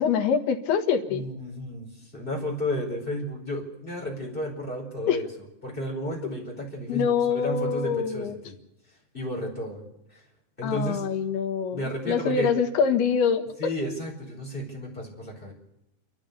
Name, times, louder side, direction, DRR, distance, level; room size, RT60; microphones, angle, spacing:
voice 1, 0.0-1.2 5.1-5.2 6.9-8.4 10.6-13.4, left 6 dB, 80° left, 6 dB, 3.4 m, -25 dB
voice 2, 1.1-5.3 5.6-8.5 9.1-9.8 10.1-10.2 10.6-11.0 11.7-12.5 13.6-15.5, equal, 15° left, -1 dB, 4.8 m, -32 dB
29.5 x 13.5 x 6.8 m, 0.88 s
omnidirectional pair, 4.5 m